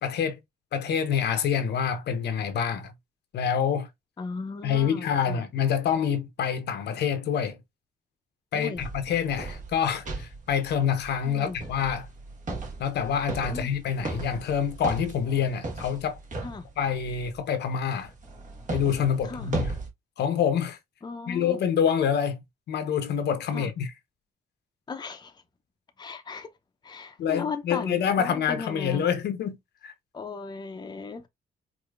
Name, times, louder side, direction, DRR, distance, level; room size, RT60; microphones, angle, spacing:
voice 1, 0.0-0.4 0.7-2.9 3.3-3.9 4.6-7.6 8.5-12.1 12.8-16.2 16.8-18.1 18.7-19.7 20.2-20.8 21.3-23.9 27.2-29.6 29.8-29.9, left 7 dB, 75° left, 0.9 m, -27 dB
voice 2, 4.2-5.5 8.5-8.9 11.2-11.6 13.5-13.7 16.4-16.7 19.2-19.5 21.0-21.6 23.5-23.7 24.9-25.4 26.0-26.5 26.8-29.1 30.1-31.3, left 4 dB, 25° left, 0.7 m, -36 dB
sound 1, 8.8-17.4 18.0-19.9, right 3 dB, 45° right, 1.4 m, -37 dB
4.9 x 2.8 x 2.4 m
cardioid pair, 110°, 17 cm